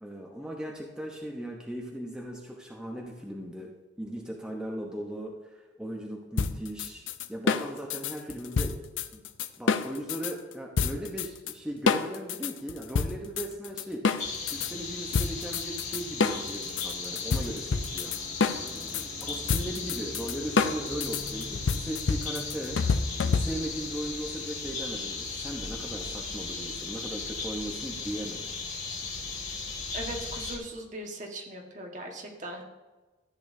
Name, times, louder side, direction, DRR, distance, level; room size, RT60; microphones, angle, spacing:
voice 1, 0.0-8.8 9.1-9.2 9.6-14.2 14.5-18.1 18.6-28.5, right 1 dB, 5° right, -1 dB, 0.8 m, -38 dB
sound 1, 6.4-10.3 10.8-11.5 11.9-14.7 15.1-23.8, left 5 dB, 85° left, 0.5 m, -28 dB
sound 2, 14.2-30.6, left 4 dB, 40° left, 2.0 m, -37 dB
sound 3, 18.1-23.6, equal, 20° left, 3.7 m, -47 dB
voice 2, 29.9-32.6, right 1 dB, 40° right, 1 dB, 1.5 m, -39 dB
14.0 x 8.7 x 2.7 m, 1.2 s
head